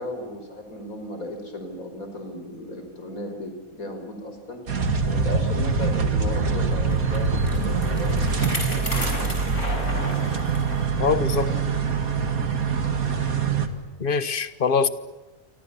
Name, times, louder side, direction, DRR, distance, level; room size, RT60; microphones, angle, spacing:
voice 1, 0.0-4.6 5.0-10.7 11.5-11.6, left 1 dB, 75° left, 5.7 m, -36 dB
sound 1, 4.7-13.7, right 5 dB, 75° right, 2.5 m, -24 dB
Bicycle, 6.9-10.8 11.3-11.4 12.2-12.3, left 1 dB, 55° left, 7.4 m, -34 dB
voice 2, 11.0-11.5 14.0-14.9, left 5 dB, 40° left, 1.4 m, -23 dB
29.5 x 25.0 x 7.1 m
omnidirectional pair, 1.5 m